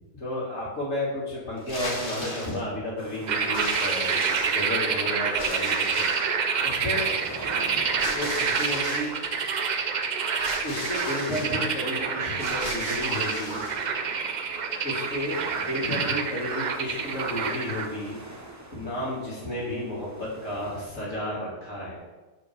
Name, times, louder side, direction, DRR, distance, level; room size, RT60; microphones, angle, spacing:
voice 1, 0.1-6.1 6.6-7.2 8.0-9.2 10.6-13.7 14.8-18.2 18.7-22.0, left 1 dB, 70° left, -8 dB, 2.6 m, -32 dB
sound 1, 1.6-2.6 3.5-4.8 5.4-6.3 8.0-9.1 10.4-11.5 12.3-13.9, left 1 dB, 40° left, 2.3 m, -36 dB
sound 2, 3.0-20.9, right 1 dB, 20° right, 0.6 m, -44 dB
sound 3, 3.3-17.9, right 6 dB, 70° right, 0.4 m, -28 dB
5.1 x 4.7 x 6.0 m, 1.2 s
omnidirectional pair, 1.4 m